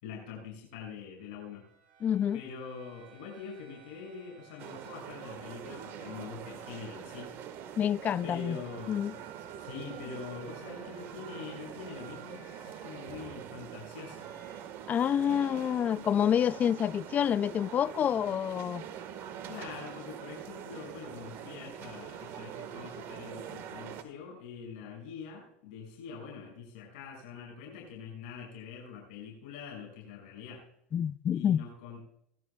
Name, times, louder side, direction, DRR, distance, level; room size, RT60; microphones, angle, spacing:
voice 1, 0.0-1.7 2.3-7.3 8.2-9.2 9.6-14.3 19.5-30.7 31.3-32.0, left 6 dB, 70° left, 6.3 m, -44 dB
sound 1, 1.2-5.2 8.6-13.5 13.9-14.6, right 7 dB, 70° right, 6.1 m, -57 dB
voice 2, 2.0-2.4 7.8-8.6 8.9-9.1 14.9-18.8 30.9-31.6, left 9 dB, 35° left, 0.3 m, -28 dB
sound 2, 4.6-24.0, right 9 dB, 50° right, 1.6 m, -44 dB
20.0 x 12.5 x 2.4 m
hypercardioid pair, 85°, 5 cm